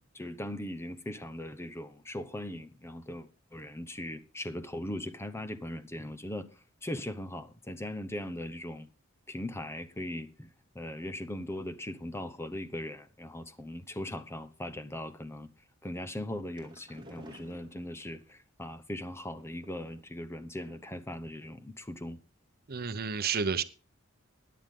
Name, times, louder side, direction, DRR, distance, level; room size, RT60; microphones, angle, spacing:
voice 1, 0.1-6.5 6.8-8.9 9.3-10.5 10.7-15.5 15.8-22.2, left 1 dB, 15° left, 0.8 m, -39 dB
sound 1, 16.5-18.3 19.3-20.2 20.7-21.1 21.4-21.5 21.8-21.9, right 1 dB, 20° right, 2.5 m, -54 dB
voice 2, 22.7-23.6, right 6 dB, 45° right, 0.8 m, -30 dB
16.5 x 10.5 x 3.7 m
head